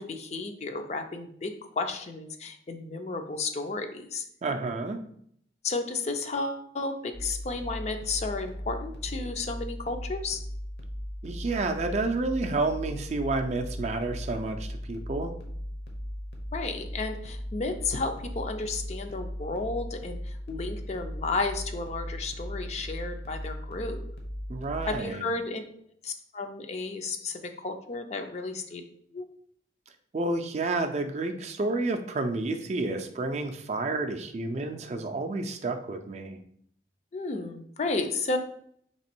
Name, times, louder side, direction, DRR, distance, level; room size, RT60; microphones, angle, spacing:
voice 1, 0.0-4.2 5.6-10.4 16.5-24.0 24.9-25.6 26.0-28.8 29.1-29.3 37.1-38.4, left 3 dB, 40° left, 6 dB, 0.4 m, -33 dB
voice 2, 4.4-5.0 11.2-15.3 24.5-25.4 30.1-36.4, right 3 dB, 40° right, 5 dB, 0.4 m, -30 dB
sound 1, 7.1-25.0, equal, 65° left, 0.8 m, -38 dB
3.3 x 3.0 x 4.4 m, 0.66 s
head